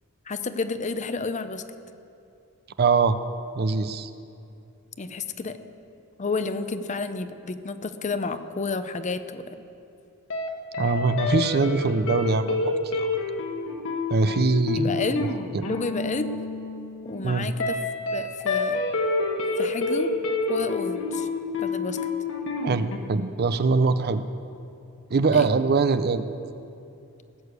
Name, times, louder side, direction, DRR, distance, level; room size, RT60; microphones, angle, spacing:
voice 1, 0.3-1.6 5.0-5.6 6.2-9.6 14.7-15.3 15.6-16.3 17.0-17.8 18.1-18.8 19.6-20.1 20.5-21.3 21.6-22.0 25.3-25.5, left 3 dB, 35° left, 10 dB, 0.6 m, -30 dB
voice 2, 2.8-3.2 3.5-4.1 10.8-13.1 14.1-15.3 15.5-15.6 17.2-17.5 22.6-24.2 25.1-26.2, right 4 dB, 50° right, 12 dB, 0.5 m, -23 dB
sound 1, 10.3-10.5 10.7-23.0, left 3 dB, 65° left, 1.4 m, -28 dB
18.5 x 6.6 x 8.1 m, 2.6 s
head